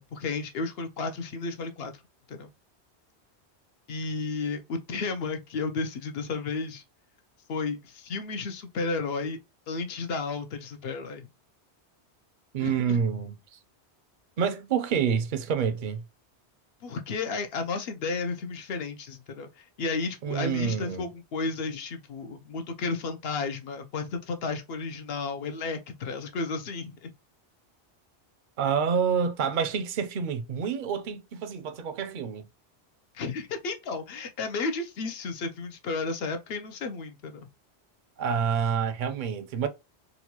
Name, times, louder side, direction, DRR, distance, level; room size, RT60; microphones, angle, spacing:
voice 1, 0.0-1.9 2.3-2.5 3.9-6.8 7.5-9.4 9.7-11.3 12.6-13.0 16.8-27.1 33.1-37.5, left 4 dB, 65° left, 0.8 m, -33 dB
voice 2, 12.5-13.3 14.4-16.0 20.2-21.1 28.6-32.4 38.2-39.7, right 7 dB, 55° right, 0.6 m, -28 dB
4.0 x 2.2 x 2.9 m
omnidirectional pair, 1.1 m